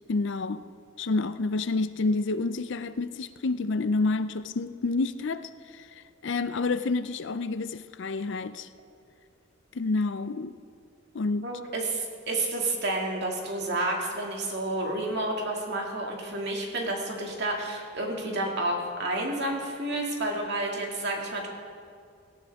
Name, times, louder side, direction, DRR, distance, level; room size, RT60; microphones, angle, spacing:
voice 1, 0.1-0.6 1.0-5.9 6.2-8.7 9.7-10.5 11.1-11.5, left 3 dB, 60° left, 12 dB, 0.5 m, -29 dB
voice 2, 11.4-21.5, right 2 dB, 55° right, 0 dB, 2.3 m, -30 dB
17.5 x 17.0 x 3.6 m, 2.2 s
head